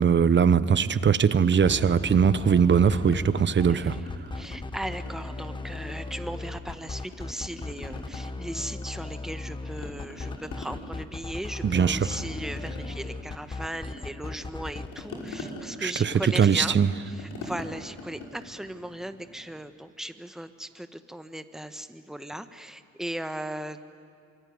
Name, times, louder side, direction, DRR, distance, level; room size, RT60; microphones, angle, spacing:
voice 1, 0.0-4.0 11.6-12.2 15.8-16.9, right 7 dB, 40° right, 15 dB, 0.9 m, -21 dB
sound 1, 1.5-3.2 3.5-4.6 4.9-6.8 7.1-9.5 9.8-19.6, left 2 dB, 80° left, 5.4 m, -44 dB
sound 2, 1.6-14.9, left 3 dB, 15° left, 1.0 m, -37 dB
voice 2, 3.7-4.0 4.3-16.8 17.1-24.0, right 1 dB, ahead, 9 dB, 1.3 m, -37 dB
25.5 x 23.0 x 9.5 m, 2.3 s
cardioid pair, 90°, 30 cm